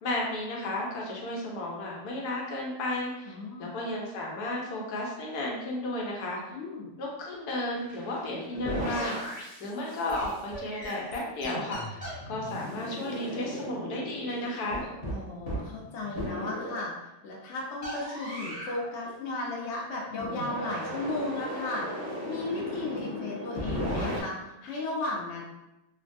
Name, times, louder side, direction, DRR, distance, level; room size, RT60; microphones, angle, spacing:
voice 1, 0.0-6.4 7.0-9.2 9.6-14.9, left 1 dB, 85° left, -2 dB, 1.2 m, -33 dB
voice 2, 3.2-3.7 6.5-6.9 15.1-16.9 17.2-21.9 22.3-25.4, left 2 dB, 60° left, -3 dB, 0.9 m, -35 dB
sound 1, 7.7-16.9 17.8-18.9 20.1-24.2, equal, 30° left, 0.7 m, -36 dB
3.2 x 2.1 x 2.5 m, 0.92 s
omnidirectional pair, 1.6 m